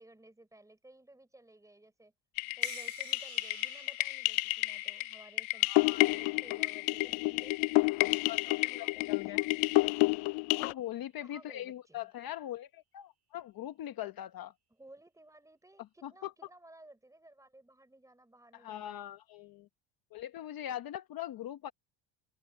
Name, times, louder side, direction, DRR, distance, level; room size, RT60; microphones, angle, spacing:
voice 1, 0.0-2.1 2.6-5.7 6.0-7.7 8.5-9.6 11.2-12.1 14.7-19.0, right 1 dB, 5° right, 4.7 m, -57 dB
sound 1, 2.4-10.7, left 23 dB, 80° left, 0.6 m, -30 dB
sound 2, 2.6-7.8 8.2-8.9 9.6-9.9, right 8 dB, 35° right, 5.3 m, -55 dB
voice 2, 5.6-6.3 8.3-9.4 10.6-14.5 16.0-16.3 18.5-19.7 20.1-21.7, left 12 dB, 45° left, 1.0 m, -41 dB
cardioid pair, 150°, 48 cm